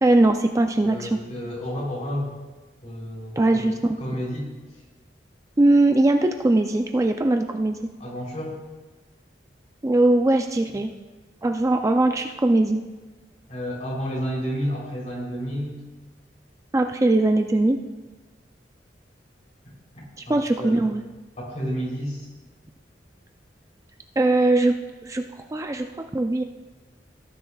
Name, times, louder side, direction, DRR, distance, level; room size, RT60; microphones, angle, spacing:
voice 1, 0.0-1.2 3.4-4.0 5.6-7.8 9.8-10.9 11.4-12.8 16.7-17.8 20.3-21.0 24.2-24.7 25.0-25.2 25.5-25.9 26.1-26.4, right 2 dB, 20° right, 5 dB, 0.4 m, -20 dB
voice 2, 0.8-2.3 2.8-4.5 8.0-8.6 10.7-10.8 13.5-15.8 20.3-20.9 21.4-22.3, equal, 45° left, -3 dB, 3.4 m, -31 dB
17.0 x 9.9 x 2.3 m, 1.2 s
head